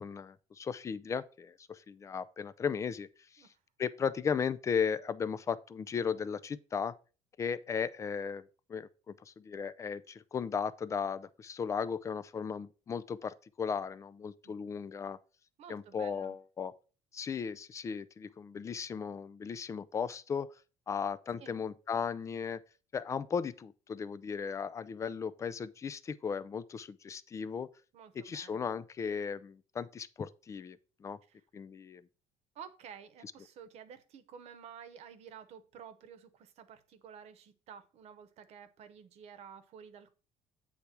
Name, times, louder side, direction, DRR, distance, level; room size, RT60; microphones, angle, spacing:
voice 1, 0.0-3.1 3.3-3.4 3.8-6.9 7.4-8.4 8.7-15.2 15.7-16.7 17.1-20.5 20.9-22.6 22.9-27.7 28.2-31.2 31.5-32.0, left 6 dB, 25° left, 0.4 m, -36 dB
voice 2, 15.6-16.4 21.4-21.5 27.9-28.6 31.3-31.4 32.5-40.1, right 7 dB, 55° right, 1.0 m, -52 dB
8.3 x 3.4 x 5.8 m
cardioid pair, 145°, 13 cm